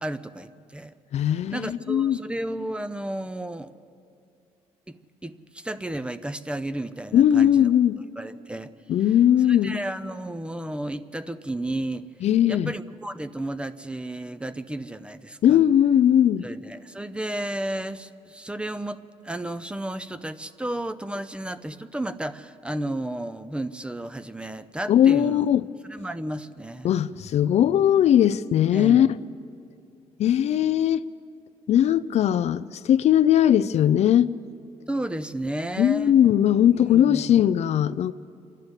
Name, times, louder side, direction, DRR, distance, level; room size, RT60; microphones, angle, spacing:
voice 1, 0.0-1.0 1.5-3.7 4.9-5.0 5.2-7.7 8.2-8.7 9.5-12.1 12.5-15.6 16.4-25.5 25.8-26.9 28.7-29.1 34.9-36.1 36.7-37.4, right 1 dB, 10° right, 0.6 m, -33 dB
voice 2, 1.1-2.2 7.1-8.0 8.9-9.8 12.2-12.7 15.4-16.5 24.9-25.6 26.8-29.1 30.2-31.0 31.7-34.3 35.8-38.1, left 10 dB, 55° left, 0.5 m, -19 dB
28.0 x 11.5 x 8.1 m
cardioid pair, 115°, 13 cm